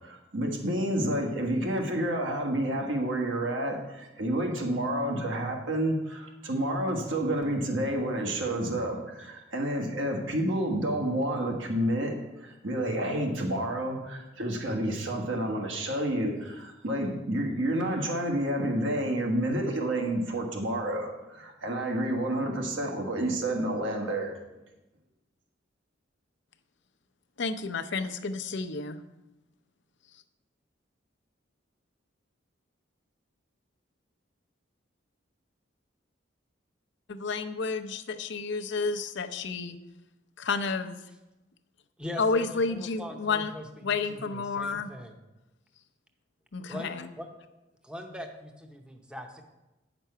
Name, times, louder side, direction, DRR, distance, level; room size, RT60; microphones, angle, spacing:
voice 1, 0.0-24.3, right 1 dB, 70° right, 1 dB, 1.5 m, -29 dB
voice 2, 27.4-29.0 37.1-39.8 40.4-41.0 42.2-43.5 43.8-44.9 46.5-47.1, left 4 dB, 65° left, 9 dB, 0.6 m, -30 dB
voice 3, 42.0-45.1 46.7-47.3 47.8-49.4, left 1 dB, 5° right, 4 dB, 0.8 m, -41 dB
9.1 x 6.0 x 5.6 m, 1.0 s
head